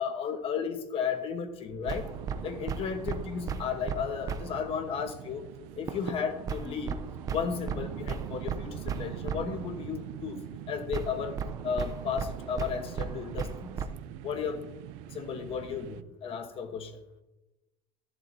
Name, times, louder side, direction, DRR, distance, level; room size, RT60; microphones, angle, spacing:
voice 1, 0.0-2.1 2.4-5.5 5.8-7.0 7.3-11.4 11.6-13.7 14.2-14.6 15.1-17.0, left 7 dB, 35° left, 9 dB, 1.0 m, -34 dB
sound 1, 1.8-16.0, right 13 dB, 90° right, 0.5 m, -43 dB
sound 2, 1.9-4.7 5.9-9.7 10.9-13.8, right 6 dB, 20° right, 0.5 m, -36 dB
14.0 x 11.0 x 2.7 m, 0.97 s
cardioid pair, 170°, 17 cm